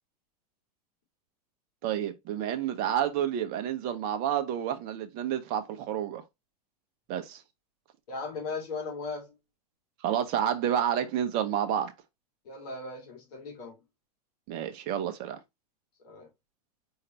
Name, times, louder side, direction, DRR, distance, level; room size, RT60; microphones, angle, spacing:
voice 1, 1.8-6.2 7.1-7.4 10.0-11.9 14.5-15.4, right 10 dB, 50° right, 1.0 m, -29 dB
voice 2, 8.1-9.3 12.4-13.8 16.0-16.3, left 4 dB, 65° left, 2.5 m, -37 dB
4.6 x 3.8 x 2.9 m
hypercardioid pair, 95°, 21 cm